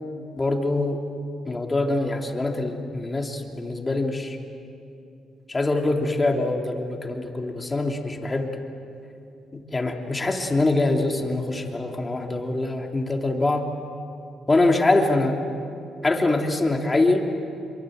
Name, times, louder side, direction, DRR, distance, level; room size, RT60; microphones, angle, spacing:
voice 1, 0.4-1.0 1.5-4.4 5.5-8.5 9.7-13.6 14.5-15.4 16.0-17.3, left 2 dB, 20° left, 2 dB, 3.0 m, -24 dB
26.5 x 23.5 x 7.9 m, 2.7 s
cardioid pair, 90°, 0 cm